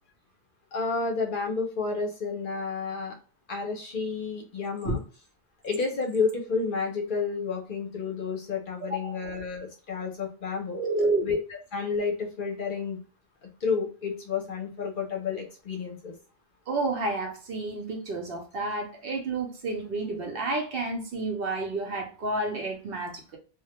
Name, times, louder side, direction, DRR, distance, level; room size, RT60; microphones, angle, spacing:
voice 1, 0.7-3.2 3.5-5.0 5.6-10.8 11.2-11.4 11.7-13.0 13.4-16.1, left 5 dB, 60° left, 0.7 m, -30 dB
voice 2, 8.8-9.2 10.7-11.3 16.7-23.4, right 2 dB, 65° right, 0.8 m, -30 dB
2.2 x 2.1 x 2.8 m
omnidirectional pair, 1.1 m